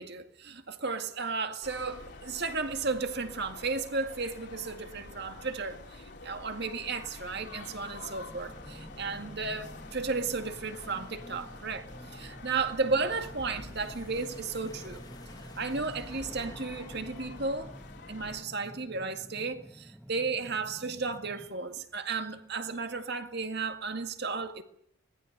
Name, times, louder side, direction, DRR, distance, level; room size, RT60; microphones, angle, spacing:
voice 1, 0.0-11.9 12.1-15.0 15.6-17.7 18.1-24.6, right 4 dB, 55° right, 2.0 m, -34 dB
sound 1, 1.6-18.4, left 3 dB, 55° left, 3.1 m, -48 dB
sound 2, 6.8-21.5, equal, 5° right, 0.9 m, -50 dB
sound 3, 13.0-18.2, left 1 dB, 20° left, 1.4 m, -51 dB
25.0 x 19.0 x 8.0 m
head